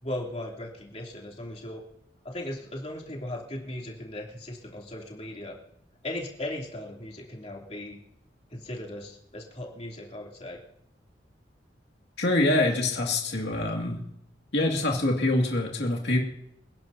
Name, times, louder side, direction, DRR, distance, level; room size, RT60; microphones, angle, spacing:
voice 1, 0.0-1.8 2.2-5.6 6.0-8.0 8.5-10.6, left 1 dB, 35° left, -2 dB, 3.0 m, -37 dB
voice 2, 12.2-14.0 14.5-16.2, left 2 dB, 70° left, 0 dB, 2.3 m, -25 dB
27.5 x 11.0 x 2.8 m, 0.72 s
head